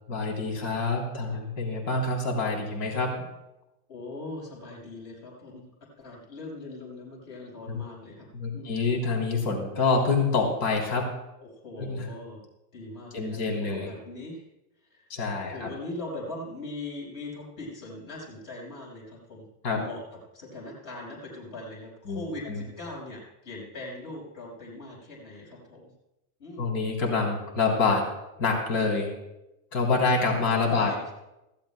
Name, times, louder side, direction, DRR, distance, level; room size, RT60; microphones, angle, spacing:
voice 1, 0.1-3.3 7.7-7.8 8.3-11.1 11.8-12.1 13.1-13.9 15.1-15.7 19.6-19.8 22.1-22.6 26.6-28.0 28.4-29.1 29.7-30.9, left 4 dB, 65° left, 0 dB, 3.5 m, -26 dB
voice 2, 3.9-5.6 6.0-8.3 8.5-8.7 11.4-12.4 12.7-14.4 14.9-15.1 15.4-19.5 19.7-20.0 20.3-25.9 26.4-26.8 30.2-31.1, left 2 dB, 45° left, -3 dB, 5.0 m, -40 dB
19.5 x 15.0 x 2.2 m, 0.94 s
supercardioid pair, 135°, 47 cm